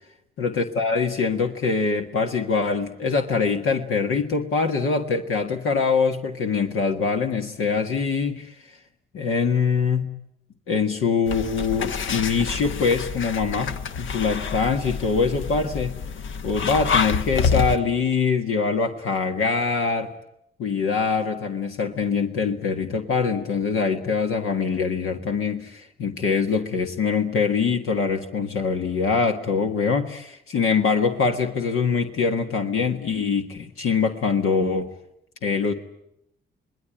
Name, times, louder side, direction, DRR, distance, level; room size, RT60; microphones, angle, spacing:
voice 1, 0.4-8.5 9.1-10.1 10.7-16.0 16.4-20.1 20.6-34.9 35.4-35.7, left 5 dB, 80° left, 4 dB, 1.8 m, -23 dB
sound 1, 11.3-17.8, left 5 dB, 65° left, 1.0 m, -27 dB
27.0 x 20.0 x 9.0 m, 0.81 s
supercardioid pair, 60°, 21 cm